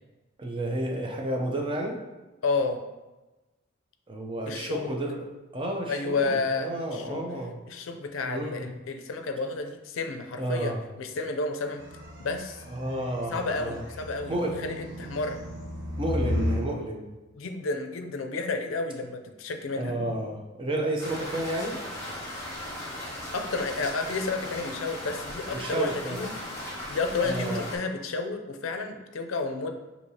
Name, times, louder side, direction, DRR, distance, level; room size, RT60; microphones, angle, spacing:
voice 1, 0.4-2.0 4.1-5.3 5.5-7.6 8.3-8.7 10.4-10.8 12.7-13.8 14.3-14.6 16.0-17.1 19.8-21.8 25.5-26.2 27.2-27.6, right 1 dB, 25° right, 1 dB, 0.5 m, -31 dB
voice 2, 2.4-2.8 4.5-4.9 5.9-7.2 7.7-11.8 12.2-12.6 13.3-15.4 17.3-20.0 23.3-26.3 26.9-29.8, left 3 dB, 90° left, 5 dB, 0.5 m, -31 dB
sound 1, 11.8-16.7, equal, 65° right, 1.0 m, -34 dB
sound 2, 21.0-27.8, left 1 dB, 15° left, 1.3 m, -37 dB
6.3 x 2.8 x 2.8 m, 1.1 s
head